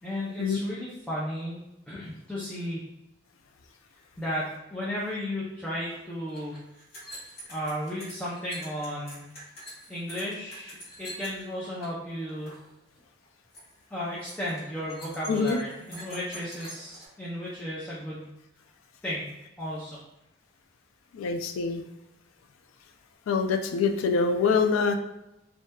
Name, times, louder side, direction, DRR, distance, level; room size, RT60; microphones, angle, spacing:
voice 1, 0.0-1.6 1.9-2.8 4.2-6.6 7.5-9.3 9.9-12.6 13.9-18.3 19.0-19.3 19.6-20.0, equal, 5° left, -8 dB, 0.4 m, -34 dB
sound 1, 5.8-5.9 6.2-11.9 12.2-12.7 13.0-13.2 13.5-13.8 14.2-17.1, equal, 50° left, 1.2 m, -46 dB
voice 2, 15.3-15.6 21.1-21.8 23.3-25.0, left 5 dB, 85° left, 7 dB, 0.3 m, -25 dB
2.6 x 2.2 x 2.2 m, 0.90 s
head